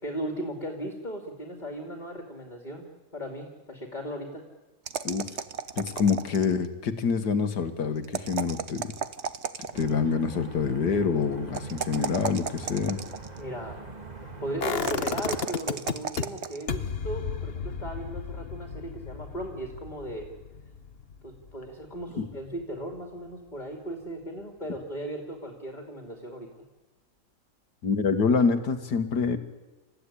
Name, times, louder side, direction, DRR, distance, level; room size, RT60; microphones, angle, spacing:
voice 1, 0.0-2.9 3.1-4.4 13.4-13.9 14.4-20.3 21.2-26.5, right 1 dB, 25° left, 3 dB, 2.6 m, -37 dB
sound 1, 4.8-6.6 8.0-10.0 11.5-13.4 14.7-16.6, right 6 dB, 45° right, 1.1 m, -34 dB
voice 2, 5.8-8.9 9.7-13.0 22.2-22.3 27.8-29.4, left 5 dB, 70° left, 9 dB, 2.2 m, -26 dB
sound 2, 9.7-15.5, right 3 dB, 25° right, 2.0 m, -42 dB
sound 3, 14.6-16.2 16.7-22.5 22.8-22.9, left 6 dB, 40° left, 1.1 m, -34 dB
28.0 x 15.5 x 9.9 m, 1.2 s
omnidirectional pair, 1.9 m